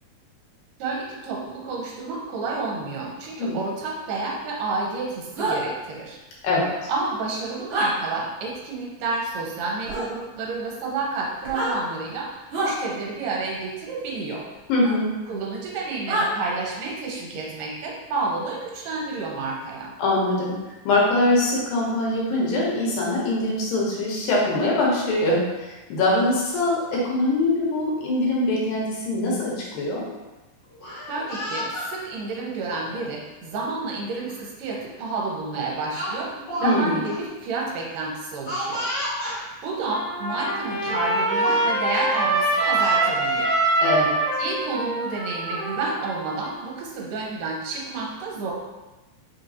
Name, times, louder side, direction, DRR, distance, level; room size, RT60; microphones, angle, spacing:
voice 1, 0.8-6.2 6.9-14.5 15.3-19.9 31.1-36.3 36.6-38.9 39.6-43.5 44.4-48.5, right 3 dB, 75° right, -2 dB, 2.4 m, -30 dB
sound 1, 5.4-5.6 7.7-7.9 9.9-10.1 11.4-11.7 12.5-12.7 14.8-14.9 16.1-16.3, right 1 dB, 60° right, 1.6 m, -25 dB
voice 2, 14.7-15.1 20.0-20.6 20.9-30.1 36.6-37.0 43.8-44.2, left 2 dB, 80° left, -4 dB, 2.6 m, -23 dB
Speech, 30.7-31.9 32.8-33.0 34.3-34.4 34.8-35.0 35.9-36.8 37.0-37.2 38.5-39.4 40.3-40.4 40.8-41.1 41.4-41.7 42.4-43.0, equal, 50° left, 1.4 m, -31 dB
Trumpet, 39.9-46.5, right 2 dB, 45° right, 1.1 m, -24 dB
5.5 x 2.8 x 2.7 m, 1.1 s
omnidirectional pair, 4.0 m